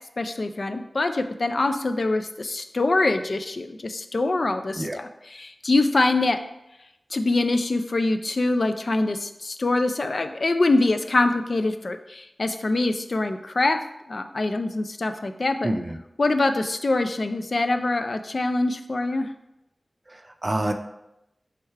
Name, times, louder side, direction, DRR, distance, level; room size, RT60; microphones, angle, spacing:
voice 1, 0.2-6.4 7.1-13.8 14.1-15.7 16.2-19.3, left 2 dB, 65° left, 8 dB, 0.3 m, -24 dB
voice 2, 15.6-16.0 20.1-20.7, right 1 dB, 40° right, 6 dB, 0.4 m, -27 dB
3.6 x 3.2 x 4.4 m, 0.88 s
wide cardioid pair, 55°, 0 cm